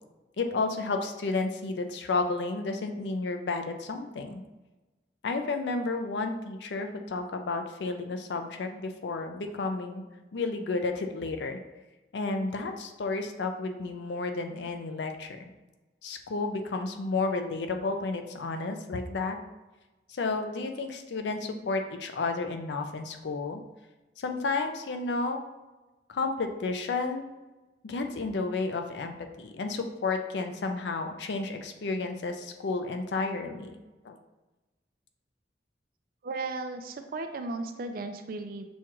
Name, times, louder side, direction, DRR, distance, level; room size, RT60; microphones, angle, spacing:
voice 1, 0.4-4.4 5.2-10.0 10.3-11.6 12.1-15.3 16.0-19.4 20.2-23.6 24.2-25.4 26.1-27.2 27.8-33.8 34.0-34.2, left 3 dB, 75° left, 5 dB, 0.4 m, -32 dB
voice 2, 36.2-38.7, right 3 dB, 55° right, 7 dB, 0.4 m, -35 dB
6.2 x 2.3 x 3.0 m, 1.1 s
head